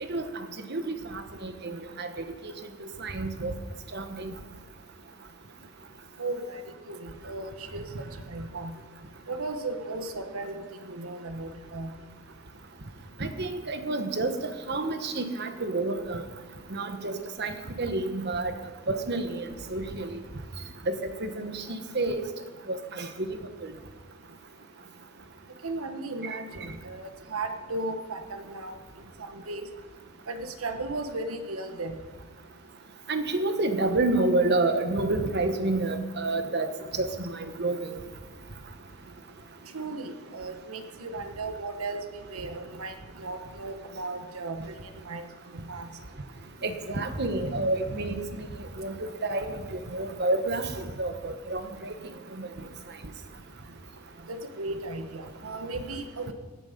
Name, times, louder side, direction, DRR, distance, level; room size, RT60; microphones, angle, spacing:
voice 1, 0.1-2.1 2.4-2.5 2.8-3.5 3.9-4.3 13.2-16.2 16.7-18.5 18.9-20.2 20.9-22.2 22.7-23.4 23.6-23.7 33.1-38.0 46.6-48.2 48.8-48.9 49.2-51.9 52.3-52.5, right 2 dB, 50° right, 7 dB, 1.2 m, -29 dB
voice 2, 6.2-6.6 6.9-7.9 8.3-8.7 9.3-11.9 25.6-28.7 29.3-29.7 30.3-32.0 39.7-42.0 42.3-44.7 45.0-45.2 45.5-45.9 54.3-56.3, right 2 dB, 80° right, 7 dB, 1.3 m, -36 dB
17.0 x 9.6 x 5.2 m, 1.4 s
head